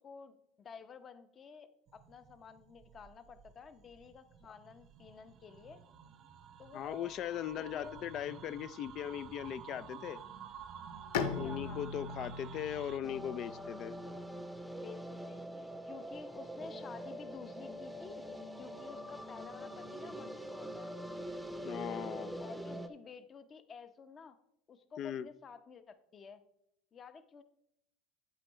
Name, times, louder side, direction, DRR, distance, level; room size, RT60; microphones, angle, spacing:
voice 1, 0.0-5.8 6.6-7.1 7.6-8.0 11.1-11.9 14.8-20.9 21.7-24.4 24.7-26.4 26.9-27.4, left 5 dB, 35° left, 11 dB, 0.8 m, -51 dB
sound 1, 1.9-13.0, right 8 dB, 45° right, 0.7 m, -52 dB
voice 2, 6.7-10.2 11.3-13.9 21.6-22.4 25.0-25.3, left 10 dB, 50° left, 17 dB, 0.3 m, -39 dB
Bowed string instrument, 11.1-14.8, left 5 dB, 80° left, 0.7 m, -40 dB
sound 2, 13.0-22.9, equal, ahead, 0.7 m, -44 dB
8.8 x 8.1 x 3.1 m, 0.75 s
supercardioid pair, 105°, 0 cm